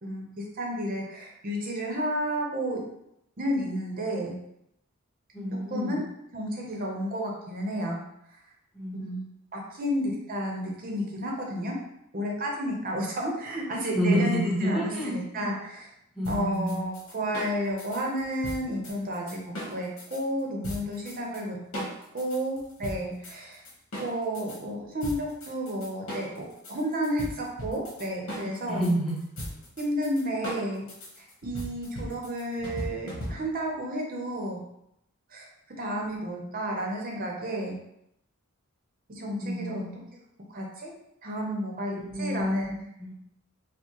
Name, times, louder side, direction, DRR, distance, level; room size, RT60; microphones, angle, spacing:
voice 1, 0.0-2.8 3.4-4.3 5.7-6.0 6.3-8.0 8.9-11.8 12.1-15.9 16.3-19.4 19.7-21.8 22.1-23.6 24.0-28.8 29.8-30.9 31.2-34.6 35.3-35.5 35.8-37.8 39.1-39.8 40.5-40.9 41.2-42.7, equal, 40° right, -1 dB, 0.7 m, -31 dB
voice 2, 5.3-6.0 8.7-9.2 13.9-15.5 16.1-16.8 28.4-29.2 39.4-40.0 41.9-43.1, equal, ahead, -6 dB, 0.9 m, -29 dB
sound 1, 16.2-20.2 20.6-21.4 21.7-24.6 25.0-33.7, equal, 70° left, 1.2 m, -38 dB
4.5 x 2.1 x 2.9 m, 0.79 s
head